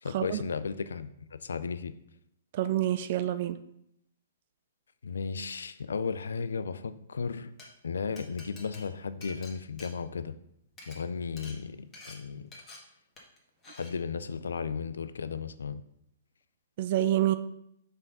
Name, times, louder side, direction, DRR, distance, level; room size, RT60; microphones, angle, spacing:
voice 1, 0.0-1.9 5.0-7.5 7.8-10.3 10.9-12.5 13.7-15.8, left 5 dB, 80° left, 13 dB, 0.4 m, -35 dB
voice 2, 2.5-3.6 16.8-17.3, right 13 dB, 50° right, 12 dB, 0.4 m, -27 dB
Glass, 7.6-7.7 8.2-10.4 10.7-11.0 11.4-11.6 11.9-12.2 12.5-12.8 13.2-13.4 13.6-13.9, left 3 dB, 20° left, 1.7 m, -48 dB
5.6 x 3.6 x 5.3 m, 0.75 s
hypercardioid pair, 125°, 0 cm